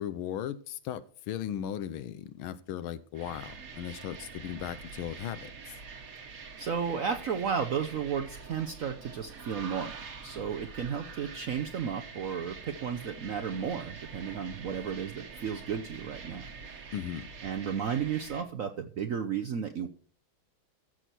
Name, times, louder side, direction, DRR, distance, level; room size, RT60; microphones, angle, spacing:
voice 1, 0.0-5.7 16.9-17.3, left 10 dB, 85° left, 1.6 m, -37 dB
sound 1, 3.1-18.4, right 5 dB, 45° right, 1.5 m, -45 dB
voice 2, 6.2-10.0 10.2-16.8 17.4-19.9, right 7 dB, 65° right, 0.8 m, -33 dB
14.5 x 6.3 x 4.3 m
omnidirectional pair, 2.3 m